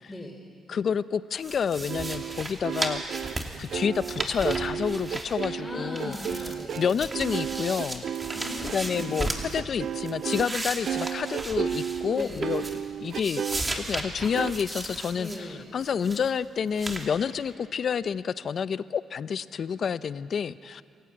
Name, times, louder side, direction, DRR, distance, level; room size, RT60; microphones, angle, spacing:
voice 1, 0.7-3.0 3.6-6.2 6.8-8.0 8.7-12.6 13.0-13.4 13.7-15.5 15.7-20.8, left 7 dB, 55° left, 15 dB, 0.6 m, -29 dB
sound 1, 1.4-5.7 5.9-9.5 9.9-12.9 13.1-15.4 15.8-16.3 16.8-17.1, right 2 dB, 20° right, 2.7 m, -35 dB
sound 2, 1.9-10.5 10.8-13.6 14.3-14.5, right 9 dB, 65° right, 0.5 m, -33 dB
voice 2, 5.6-6.9 8.3-9.2 12.1-12.7 15.1-15.7, left 1 dB, 10° left, -1 dB, 3.8 m, -39 dB
27.0 x 16.0 x 8.7 m, 2.2 s
cardioid pair, 90°, 0 cm